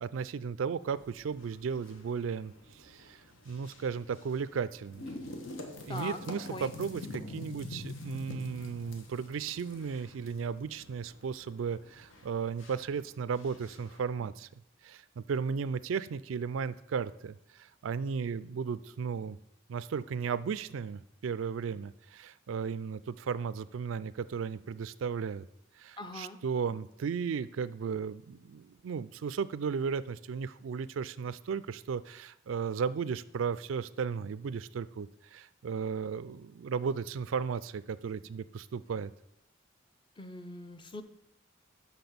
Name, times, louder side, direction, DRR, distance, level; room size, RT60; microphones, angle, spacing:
voice 1, 0.0-5.1 5.9-14.5 14.8-19.4 19.7-25.4 25.8-39.1, right 6 dB, 85° right, 16 dB, 0.4 m, -35 dB
sound 1, 0.8-14.0, left 2 dB, 85° left, 1.2 m, -47 dB
voice 2, 26.0-26.4 40.2-41.0, left 2 dB, 25° left, 9 dB, 0.6 m, -41 dB
5.9 x 5.6 x 6.9 m, 0.86 s
head